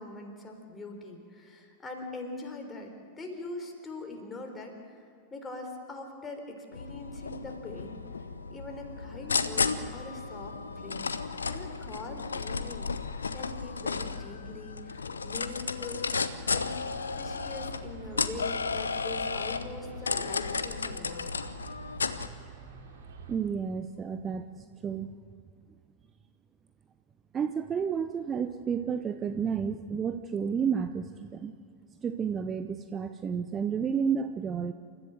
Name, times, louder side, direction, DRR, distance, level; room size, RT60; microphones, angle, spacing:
voice 1, 0.0-5.0 5.3-8.0 8.5-11.1 11.5-16.7 17.1-21.3, left 2 dB, 15° left, 3 dB, 3.9 m, -42 dB
sound 1, 6.7-22.3, left 4 dB, 75° left, 0.9 m, -33 dB
sound 2, 16.8-23.3, right 5 dB, 60° right, 3.0 m, -48 dB
voice 2, 23.3-25.2 27.3-31.5 32.0-34.7, right 7 dB, 25° right, 9 dB, 0.7 m, -31 dB
28.5 x 14.0 x 7.8 m, 2.3 s
figure-of-eight pair, 90°, 0 cm